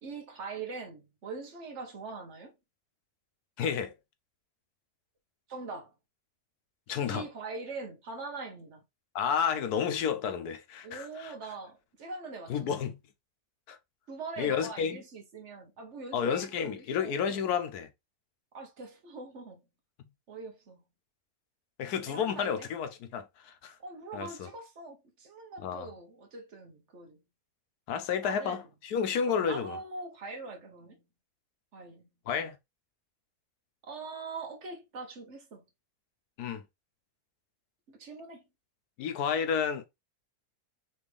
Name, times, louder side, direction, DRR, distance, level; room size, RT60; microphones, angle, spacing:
voice 1, 0.0-2.5 5.5-5.9 7.1-8.8 10.8-12.8 14.1-17.5 18.5-19.6 20.3-20.8 22.1-22.7 23.8-27.2 28.2-28.7 29.3-31.1 31.7-32.0 33.9-35.6 37.9-38.4, right 4 dB, 55° right, 1.2 m, -42 dB
voice 2, 3.6-3.9 6.9-7.3 9.1-11.3 12.5-13.0 13.7-13.8 14.4-15.0 16.1-17.9 21.8-23.8 24.1-24.5 25.6-25.9 27.9-29.8 32.3-32.6 36.4-36.6 39.0-39.9, left 7 dB, 90° left, 1.3 m, -31 dB
4.3 x 3.1 x 3.3 m
omnidirectional pair, 1.6 m